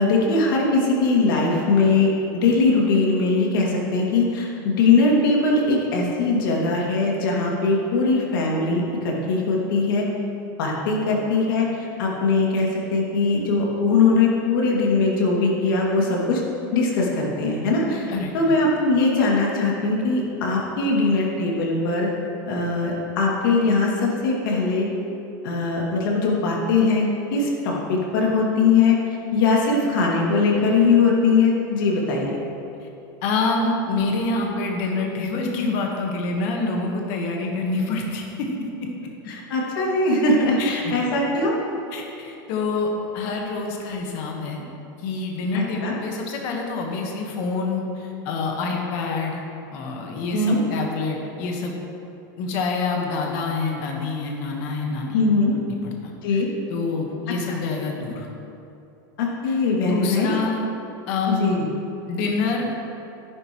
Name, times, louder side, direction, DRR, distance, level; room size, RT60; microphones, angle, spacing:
voice 1, 0.0-10.1 10.6-16.4 16.7-22.1 22.4-24.9 25.4-29.0 29.3-32.4 39.3-41.5 45.5-45.9 50.3-50.6 55.1-55.5 56.2-56.5 57.5-57.6 59.2-60.3 61.3-61.6, left 3 dB, 75° left, -2 dB, 2.4 m, -21 dB
voice 2, 18.1-18.6 33.2-38.9 40.6-40.9 41.9-44.6 45.0-49.4 49.7-51.8 52.4-55.3 55.7-56.4 56.7-58.3 59.5-59.6 59.8-60.6 61.1-61.6 62.0-62.7, left 3 dB, 50° left, 1 dB, 1.4 m, -27 dB
12.0 x 10.5 x 3.1 m, 2.8 s
supercardioid pair, 165°, 11 cm